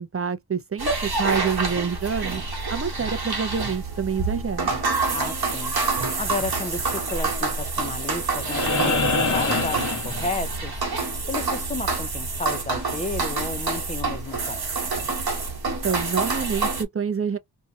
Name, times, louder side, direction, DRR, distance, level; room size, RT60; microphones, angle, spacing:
voice 1, 0.0-4.7 15.6-17.4, right 6 dB, 35° right, 0.5 m, -27 dB
sound 1, 0.8-16.8, right 3 dB, 65° right, 1.2 m, -27 dB
voice 2, 5.1-5.8 6.2-10.8 11.3-14.6, left 3 dB, 20° left, 0.6 m, -32 dB
sound 2, 8.4-10.8 12.6-12.7, left 3 dB, 45° left, 0.9 m, -25 dB
2.7 x 2.3 x 2.8 m
wide cardioid pair, 85°, 40 cm